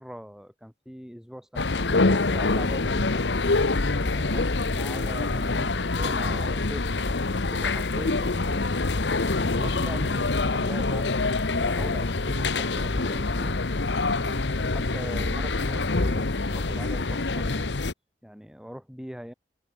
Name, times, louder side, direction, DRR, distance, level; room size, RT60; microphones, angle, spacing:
voice 1, 0.0-3.3 4.0-7.1 7.5-8.8 9.4-13.6 14.2-17.7 18.2-19.3, equal, 5° right, 3.9 m, -41 dB
sound 1, 1.6-17.9, left 3 dB, 85° left, 1.2 m, -25 dB
head